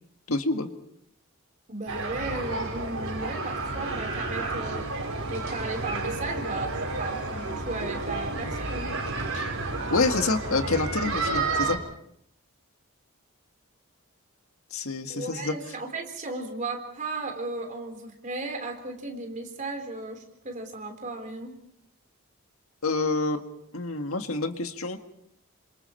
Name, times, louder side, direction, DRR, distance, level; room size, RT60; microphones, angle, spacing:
voice 1, 0.3-0.7 9.3-9.5 9.9-11.8 14.7-15.5 22.8-23.4 23.7-25.0, left 3 dB, 75° left, 6 dB, 1.8 m, -27 dB
voice 2, 1.7-4.9 5.3-8.9 15.1-21.5, right 2 dB, 35° right, 4 dB, 3.7 m, -35 dB
sound 1, 1.9-11.8, right 3 dB, 70° right, 5.2 m, -31 dB
28.5 x 26.0 x 4.5 m, 0.71 s
head